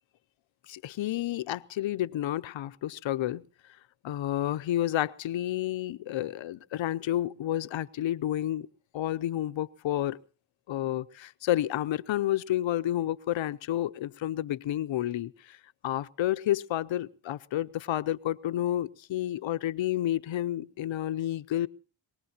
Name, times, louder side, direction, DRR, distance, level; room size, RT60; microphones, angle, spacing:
voice 1, 0.7-3.4 4.0-8.7 8.9-10.2 10.7-15.6 15.8-21.7, left 13 dB, 80° left, 0.7 m, -30 dB
23.0 x 19.0 x 2.9 m
cardioid pair, 60°, 46 cm